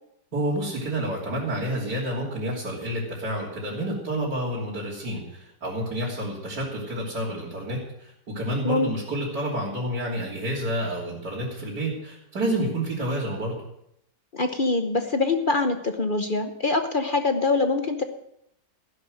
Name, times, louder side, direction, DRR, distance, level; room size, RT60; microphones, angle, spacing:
voice 1, 0.3-13.6, right 1 dB, 70° right, -7 dB, 3.7 m, -29 dB
voice 2, 14.3-18.0, left 3 dB, 40° left, 7 dB, 0.8 m, -24 dB
15.0 x 11.0 x 6.5 m, 0.78 s
omnidirectional pair, 1.8 m